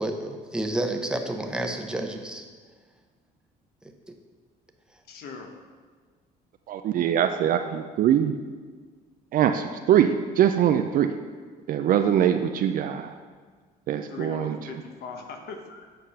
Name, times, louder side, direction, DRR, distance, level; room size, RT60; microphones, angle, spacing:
voice 1, 0.0-2.4 4.1-4.2, right 1 dB, 5° right, 4 dB, 0.8 m, -30 dB
voice 2, 5.1-5.5 14.1-15.9, left 5 dB, 70° left, 4 dB, 1.2 m, -39 dB
voice 3, 6.7-8.3 9.3-11.1 11.7-13.1 13.9-14.6, right 9 dB, 55° right, 7 dB, 0.4 m, -22 dB
8.0 x 4.8 x 5.7 m, 1.5 s
cardioid pair, 110°, 17 cm